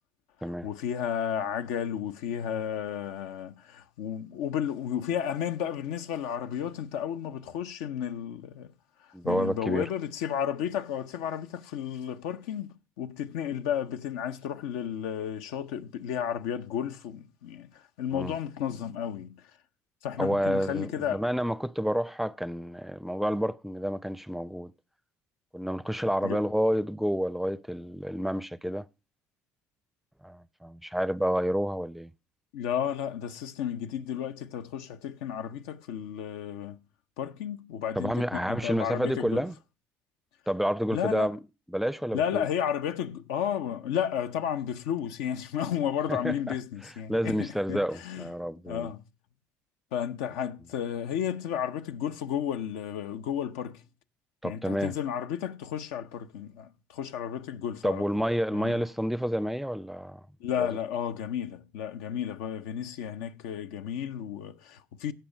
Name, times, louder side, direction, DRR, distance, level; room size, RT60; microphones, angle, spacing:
voice 1, 0.6-8.7 9.2-19.4 20.0-21.2 26.2-26.4 32.5-36.8 37.2-39.5 40.9-41.3 42.1-48.3 48.7-49.0 49.9-53.8 54.4-58.2 58.5-58.8 60.4-65.1, left 9 dB, 85° left, 0.6 m, -33 dB
voice 2, 9.1-9.9 18.1-18.3 20.2-24.7 25.5-28.9 30.2-32.1 38.0-39.6 40.5-41.4 41.7-42.5 46.1-46.5 46.8-48.9 54.4-54.9 57.8-60.2 60.6-60.7, equal, 5° right, 0.4 m, -29 dB
16.0 x 5.6 x 5.0 m
supercardioid pair, 70°, 7 cm